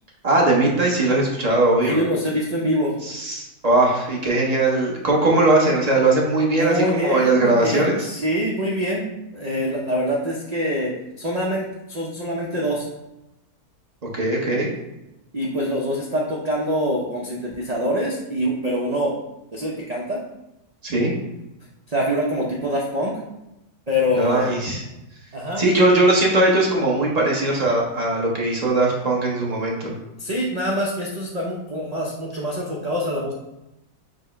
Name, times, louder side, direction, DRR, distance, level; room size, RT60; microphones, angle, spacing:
voice 1, 0.2-2.0 3.0-8.1 14.1-14.7 20.8-21.1 24.1-24.8 25.6-29.9, right 2 dB, 35° right, -3 dB, 0.8 m, -19 dB
voice 2, 1.8-3.0 6.5-10.9 11.2-12.9 15.3-19.1 19.5-20.2 21.9-23.2 23.9-24.6 25.3-25.6 30.2-33.3, equal, 90° right, -3 dB, 0.3 m, -25 dB
5.1 x 2.1 x 4.8 m, 0.93 s
omnidirectional pair, 1.6 m